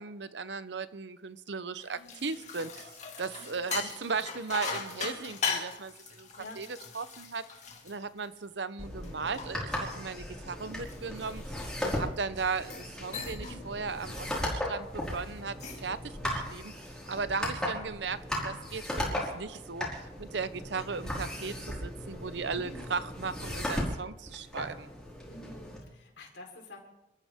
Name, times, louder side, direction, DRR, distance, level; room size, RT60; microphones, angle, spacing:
voice 1, 0.0-2.9 3.2-6.3 6.6-6.7 6.9-7.5 7.8-11.5 11.8-16.7 17.1-24.9, right 5 dB, 70° right, 0.8 m, -37 dB
voice 2, 1.8-2.3 3.4-4.0 5.0-5.2 6.4-6.6 13.4-13.6 22.5-22.9 25.2-26.8, left 2 dB, 75° left, 4.1 m, -49 dB
sound 1, 1.8-8.6 9.0-12.1 12.6-12.9 13.1-13.6 14.0-14.2 15.4-15.9, left 5 dB, 40° left, 2.4 m, -39 dB
sound 2, 8.8-25.8, equal, 5° left, 4.7 m, -37 dB
28.0 x 14.0 x 3.7 m
head